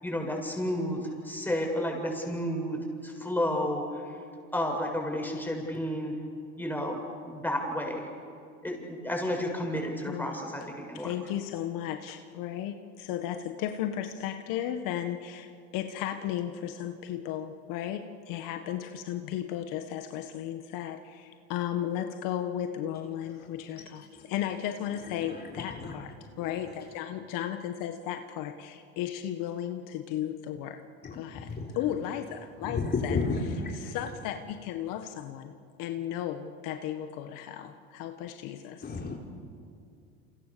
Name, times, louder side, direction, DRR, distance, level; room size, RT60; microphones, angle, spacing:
voice 1, 0.0-4.0 4.5-6.1 6.6-8.0 8.6-11.1, equal, 5° left, 1 dB, 7.6 m, -31 dB
voice 2, 10.1-10.4 10.9-26.1 26.4-30.8 31.1-35.5 35.8-38.8, left 10 dB, 70° left, 7 dB, 1.6 m, -35 dB
voice 3, 25.3-25.9 31.0-31.7 32.6-34.0 38.8-39.1, left 4 dB, 30° left, 0 dB, 3.9 m, -32 dB
29.0 x 28.0 x 7.0 m, 2.4 s
supercardioid pair, 95°, 34 cm